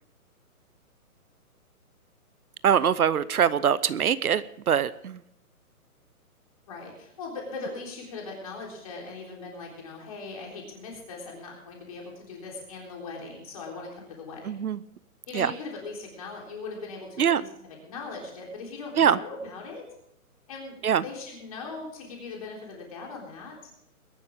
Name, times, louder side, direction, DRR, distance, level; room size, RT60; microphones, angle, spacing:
voice 1, 2.6-5.2 14.5-14.8 15.3-15.5 17.2-17.4 18.9-19.2 20.8-21.0, right 8 dB, 70° right, 17 dB, 0.8 m, -23 dB
voice 2, 6.7-14.7 15.3-17.5 17.9-19.8 20.5-23.7, left 3 dB, 25° left, 0 dB, 3.7 m, -40 dB
22.0 x 11.5 x 3.6 m, 0.77 s
hypercardioid pair, 180°, 45 cm